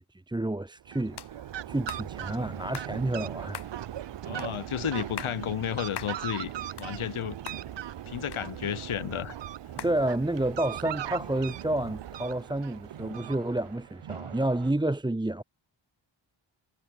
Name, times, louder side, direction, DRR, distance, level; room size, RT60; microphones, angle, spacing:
voice 1, 0.0-3.6 9.8-15.4, right 1 dB, 10° right, 0.8 m, -30 dB
Fowl, 0.8-13.8, right 11 dB, 60° right, 0.7 m, -39 dB
sound 1, 1.2-1.3 1.9-2.1 2.7-2.9 3.5-3.7 4.4-4.5 5.0-5.4 5.9-6.2 6.6-7.2 7.5-7.6 8.3-8.9 9.8-10.0, left 8 dB, 55° left, 1.0 m, -40 dB
sound 2, 1.8-14.7, right 10 dB, 90° right, 1.3 m, -46 dB
voice 2, 4.2-6.5 6.8-7.4 8.1-9.4, left 10 dB, 85° left, 1.3 m, -32 dB
wide cardioid pair, 95°, 49 cm